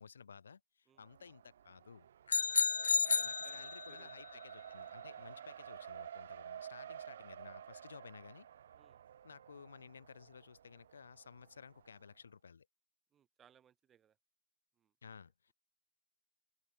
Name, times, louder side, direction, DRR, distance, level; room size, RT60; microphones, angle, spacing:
voice 1, 0.0-2.1 3.2-8.5 9.2-12.7 15.0-15.5, left 6 dB, 65° left, 4.2 m, -55 dB
Race car auto racing, 1.0-12.0, right 9 dB, 40° right, 1.3 m, -52 dB
sound 1, 2.3-4.1, left 5 dB, 85° left, 0.4 m, -32 dB
voice 2, 2.8-4.1 8.7-9.0 13.1-14.2 14.7-14.9, right 9 dB, 10° right, 2.7 m, -67 dB
open air
hypercardioid pair, 170°, 0 cm